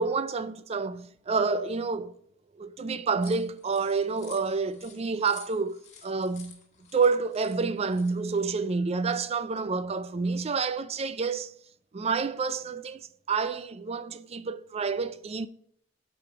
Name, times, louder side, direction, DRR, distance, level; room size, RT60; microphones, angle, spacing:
voice 1, 0.0-2.1 2.6-6.6 6.9-11.5 11.9-13.0 13.3-15.5, right 4 dB, 35° right, 0.4 m, -28 dB
sound 1, 3.2-8.5, left 7 dB, 40° left, 1.4 m, -52 dB
8.8 x 5.0 x 4.5 m
head